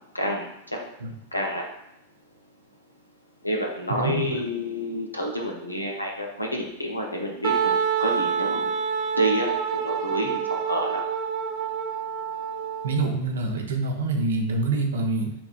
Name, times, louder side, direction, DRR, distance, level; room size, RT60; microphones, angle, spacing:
voice 1, 0.1-0.8 1.3-1.7 3.4-8.7 9.1-9.5 9.8-11.0, equal, 85° left, 0 dB, 0.8 m, -29 dB
voice 2, 3.9-4.4 12.8-15.3, right 3 dB, 65° right, 3 dB, 0.7 m, -26 dB
Wind instrument woodwind instrument, 7.4-13.1, right 7 dB, 40° right, 0.4 m, -27 dB
5.9 x 3.4 x 2.3 m, 0.81 s
figure-of-eight pair, 90°, 0 cm